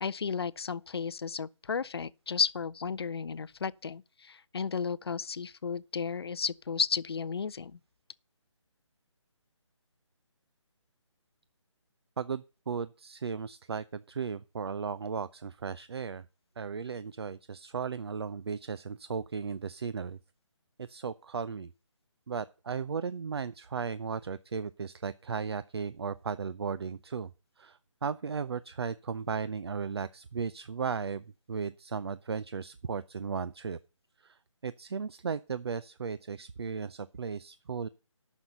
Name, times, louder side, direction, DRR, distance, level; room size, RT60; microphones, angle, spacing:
voice 1, 0.0-7.8, left 6 dB, 50° left, 0.5 m, -33 dB
voice 2, 12.2-16.3 16.6-20.2 20.8-21.7 22.3-27.3 27.6-33.8 34.2-37.9, right 6 dB, 55° right, 0.5 m, -36 dB
9.4 x 6.3 x 7.9 m
hypercardioid pair, 170°, 16 cm